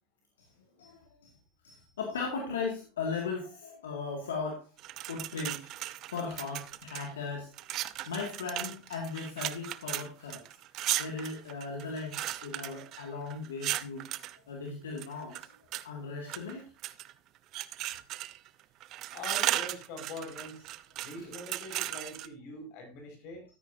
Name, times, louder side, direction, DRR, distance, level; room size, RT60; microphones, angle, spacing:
voice 1, 1.6-7.5 8.0-10.4 11.0-14.1 14.5-15.5 15.8-16.7, left 4 dB, 90° left, 0 dB, 2.1 m, -37 dB
sound 1, 4.8-7.1 7.5-14.4 15.0-15.8 16.3-17.1 17.5-18.5 18.8-22.3, right 14 dB, 50° right, 0.6 m, -36 dB
voice 2, 19.1-20.7 21.0-23.4, left 2 dB, 60° left, 4 dB, 5.3 m, -43 dB
13.0 x 9.3 x 2.7 m, 0.31 s
hypercardioid pair, 95°, 0 cm